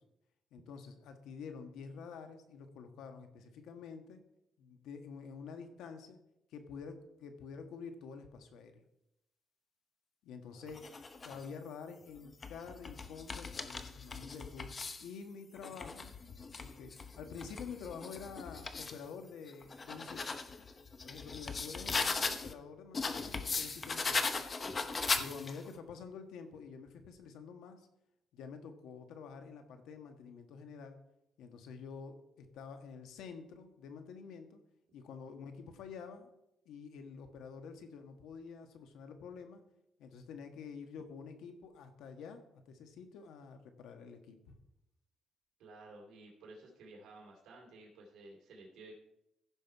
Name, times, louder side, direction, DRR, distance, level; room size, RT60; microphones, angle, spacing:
voice 1, 0.5-4.2 4.6-6.2 6.5-8.8 10.2-10.8 11.2-14.7 15.0-16.1 16.6-20.2 21.0-24.3 25.2-27.9 28.3-31.0 31.4-34.6 34.9-36.3 36.6-39.6 40.0-42.4 42.7-44.5, left 5 dB, 85° left, 7 dB, 1.4 m, -48 dB
sound 1, 10.7-11.5 12.2-15.1 15.6-19.0 19.5-22.5 22.9-25.7, left 4 dB, 30° left, 0.8 m, -38 dB
voice 2, 45.6-48.9, right 2 dB, 75° right, -1 dB, 2.8 m, -54 dB
15.0 x 5.7 x 4.6 m, 0.84 s
cardioid pair, 130°, 0 cm